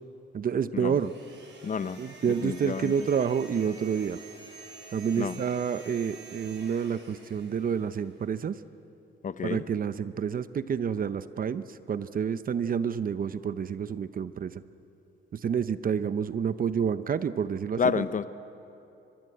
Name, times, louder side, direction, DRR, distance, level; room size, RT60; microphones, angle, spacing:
voice 1, 0.3-1.1 2.0-4.2 4.9-8.6 9.4-14.6 15.3-18.1, right 7 dB, 45° right, 13 dB, 0.9 m, -29 dB
sound 1, 0.8-8.2, right 3 dB, 60° right, 7.0 m, -49 dB
voice 2, 1.6-2.0 2.2-2.9 5.2-5.4 9.2-9.6 17.8-18.2, left 6 dB, 40° left, 14 dB, 0.8 m, -29 dB
23.5 x 23.5 x 7.9 m, 2.8 s
cardioid pair, 90°, 20 cm